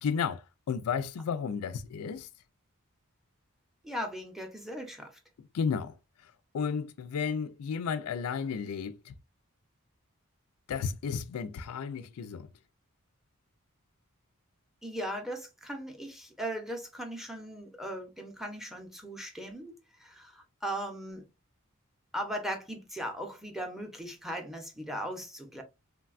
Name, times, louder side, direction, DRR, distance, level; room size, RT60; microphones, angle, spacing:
voice 1, 0.0-2.3 5.5-6.0 6.5-9.1 10.7-12.5, left 6 dB, 80° left, 0.4 m, -33 dB
voice 2, 3.8-5.2 14.8-19.7 20.0-21.2 22.1-25.6, equal, ahead, 0.6 m, -38 dB
3.3 x 2.2 x 2.4 m
head